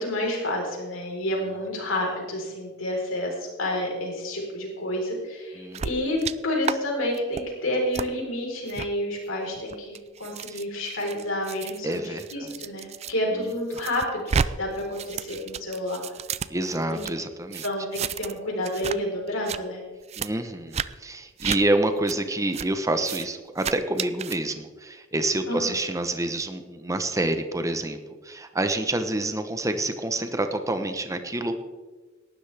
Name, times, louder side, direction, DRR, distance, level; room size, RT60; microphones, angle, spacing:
voice 1, 0.0-14.2 14.6-16.1 16.9-17.0 17.6-19.8 25.5-25.8, left 1 dB, 85° left, -1 dB, 4.2 m, -29 dB
sound 1, 5.7-6.3 6.6-6.8 7.1-7.4 7.9-8.1 8.7-8.9 9.5-13.1 13.5-14.5 14.8-17.1 17.5-18.4 18.6-19.0 19.3-19.6 20.1-20.3 20.7-20.9 21.4-21.6 22.1-22.2 22.5-22.7 23.0-23.3 23.6-24.4, right 6 dB, 30° right, 0.4 m, -31 dB
voice 2, 11.8-12.5 13.3-13.5 16.5-17.6 20.2-31.6, right 2 dB, 15° right, 8 dB, 1.0 m, -28 dB
18.0 x 12.5 x 3.5 m, 1.3 s
head